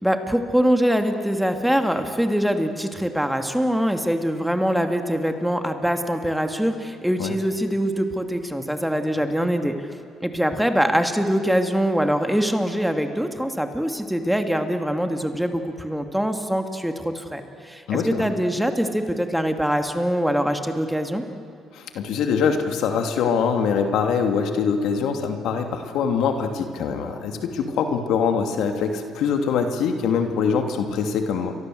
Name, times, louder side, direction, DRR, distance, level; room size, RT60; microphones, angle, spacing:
voice 1, 0.0-9.9 10.2-21.2, equal, ahead, 6 dB, 2.6 m, -23 dB
voice 2, 17.9-18.3 21.7-31.5, left 6 dB, 75° left, 5 dB, 2.8 m, -23 dB
30.0 x 23.5 x 8.0 m, 2.6 s
cardioid pair, 80°, 0 cm